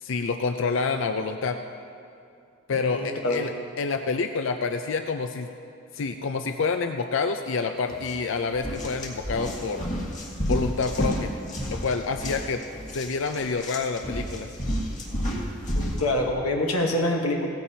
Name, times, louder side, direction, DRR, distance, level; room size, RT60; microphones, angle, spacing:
voice 1, 0.0-1.6 2.7-3.5 3.8-5.5 5.9-9.9 10.4-11.3 11.7-12.6 12.9-14.5, left 4 dB, 60° left, 6 dB, 0.5 m, -28 dB
voice 2, 2.8-3.5 15.7-17.5, left 1 dB, 85° left, 0 dB, 1.2 m, -26 dB
sound 1, 7.9-8.1 8.5-16.1, equal, 35° left, 1.6 m, -31 dB
17.0 x 14.5 x 2.8 m, 2.5 s
head